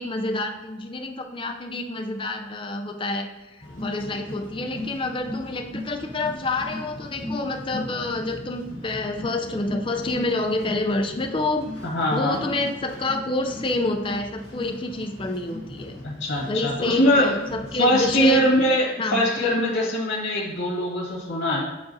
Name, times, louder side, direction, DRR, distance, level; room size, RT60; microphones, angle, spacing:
voice 1, 0.0-11.6 12.1-16.0 16.5-18.4 19.0-19.3, left 2 dB, 25° left, 4 dB, 0.5 m, -28 dB
sound 1, 3.6-18.7, left 1 dB, 65° left, 1.6 m, -38 dB
voice 2, 11.8-12.4 16.0-17.3 17.8-21.6, equal, 85° left, -3 dB, 1.7 m, -22 dB
9.2 x 3.8 x 2.7 m, 1.1 s
head